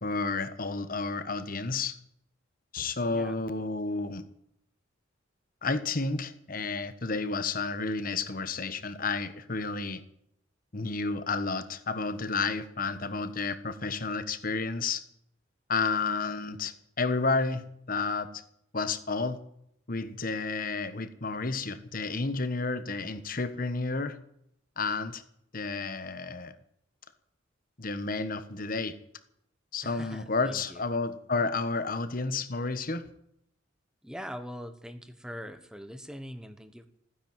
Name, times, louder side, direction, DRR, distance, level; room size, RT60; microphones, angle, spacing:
voice 1, 0.0-2.0 2.7-4.3 5.6-10.0 10.7-15.0 15.7-18.4 18.7-19.4 19.9-24.2 24.8-25.2 25.5-26.5 27.8-28.9 29.7-33.1, left 4 dB, 45° left, 12 dB, 1.3 m, -31 dB
voice 2, 3.1-3.4 29.8-30.8 34.0-36.9, equal, 5° right, 10 dB, 1.2 m, -42 dB
15.5 x 10.0 x 9.1 m, 0.73 s
head